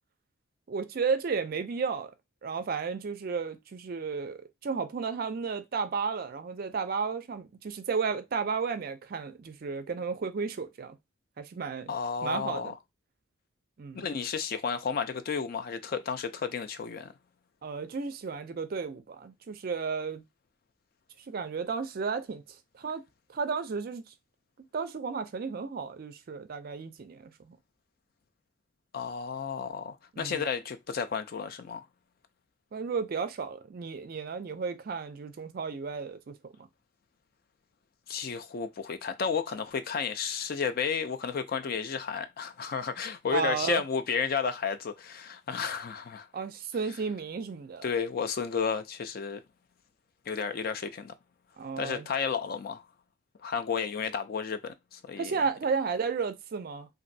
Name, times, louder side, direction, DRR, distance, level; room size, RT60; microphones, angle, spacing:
voice 1, 0.7-2.1 2.4-11.0 11.4-11.9 12.2-12.7 13.8-14.1 17.6-20.2 21.3-22.4 22.7-23.0 23.3-24.0 24.7-27.6 30.1-30.4 32.7-36.3 43.3-43.8 46.3-47.9 51.6-52.1 55.2-56.9, right 5 dB, 45° right, 0.4 m, -33 dB
voice 2, 11.9-12.8 14.0-17.1 28.9-31.9 38.1-46.3 47.8-49.4 50.3-51.1 51.8-52.8 53.4-55.3, left 6 dB, 45° left, 0.3 m, -32 dB
3.0 x 2.5 x 2.6 m
head